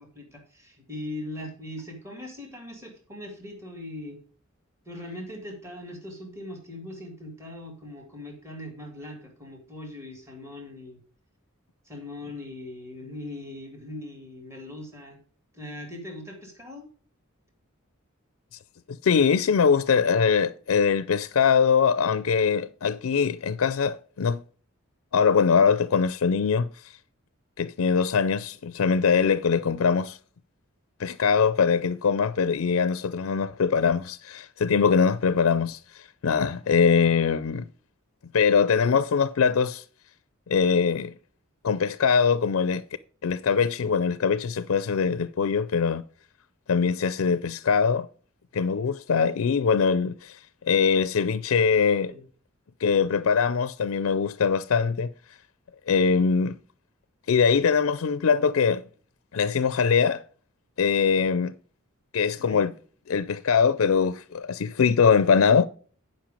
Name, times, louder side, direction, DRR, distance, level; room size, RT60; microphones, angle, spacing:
voice 1, 0.0-4.2 4.9-11.0 11.9-15.2 15.5-16.9 52.1-52.3 62.4-62.7, left 1 dB, 15° right, 2.3 m, -40 dB
voice 2, 18.9-24.4 25.1-26.7 27.6-30.2 31.0-35.8 36.2-37.7 38.3-39.8 40.5-41.1 41.6-42.8 43.2-46.0 46.7-48.1 48.5-50.4 50.6-52.1 52.8-55.1 55.9-56.6 57.3-58.8 59.3-60.2 60.8-61.5 62.1-62.7 63.1-65.7, left 6 dB, 80° left, 0.4 m, -22 dB
10.5 x 5.5 x 5.0 m
head